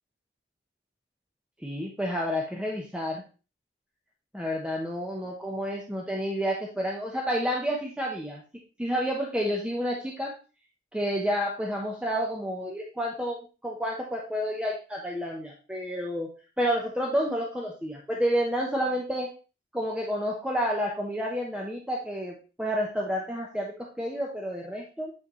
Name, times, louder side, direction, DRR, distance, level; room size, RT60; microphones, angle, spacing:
voice 1, 1.6-3.2 4.3-8.4 8.8-10.3 10.9-16.3 16.6-19.3 19.7-25.1, equal, 5° right, -2 dB, 0.9 m, -30 dB
8.6 x 4.1 x 3.1 m, 0.34 s
head